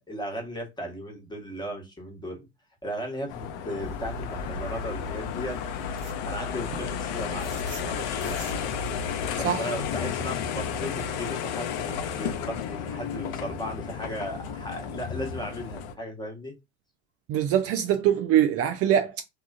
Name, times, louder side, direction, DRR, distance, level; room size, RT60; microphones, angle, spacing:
voice 1, 0.0-2.5 2.8-5.6 6.2-8.4 9.4-16.5, equal, 10° left, 1.2 m, -36 dB
sound 1, 3.3-15.9, left 8 dB, 60° left, 0.6 m, -33 dB
sound 2, 3.8-9.5, left 1 dB, 65° right, 0.8 m, -38 dB
voice 2, 9.3-9.7 17.3-19.2, right 10 dB, 45° right, 0.4 m, -23 dB
2.8 x 2.4 x 2.4 m
hypercardioid pair, 80°, 35 cm